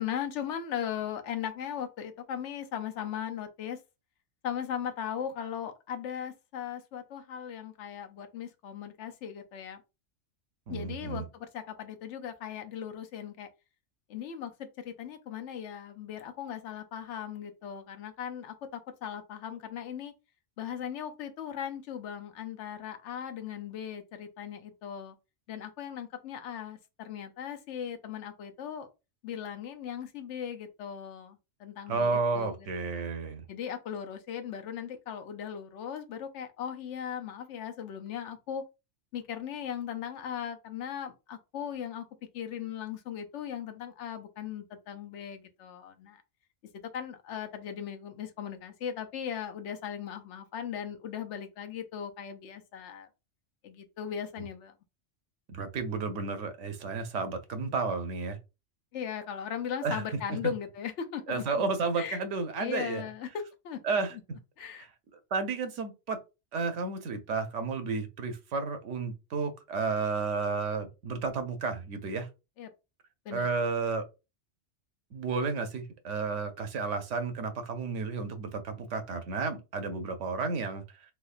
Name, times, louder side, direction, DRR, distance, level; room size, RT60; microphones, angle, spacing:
voice 1, 0.0-3.8 4.4-9.8 10.7-13.5 14.1-20.1 20.6-25.2 25.5-28.9 29.2-32.5 32.9-33.1 33.5-38.6 39.1-42.0 42.3-46.2 46.9-53.1 53.6-54.7 58.9-61.6 62.0-62.2 62.6-63.8 64.6-64.8 72.6-72.7 73.3-73.5, left 8 dB, 75° left, 0.9 m, -38 dB
voice 2, 10.7-11.3 31.9-33.4 55.5-58.4 59.8-60.0 61.3-63.0 63.8-64.2 64.7-66.2 66.5-72.3 73.3-74.0 75.1-80.8, right 4 dB, 80° right, 1.0 m, -32 dB
3.4 x 3.0 x 2.4 m
omnidirectional pair, 1.2 m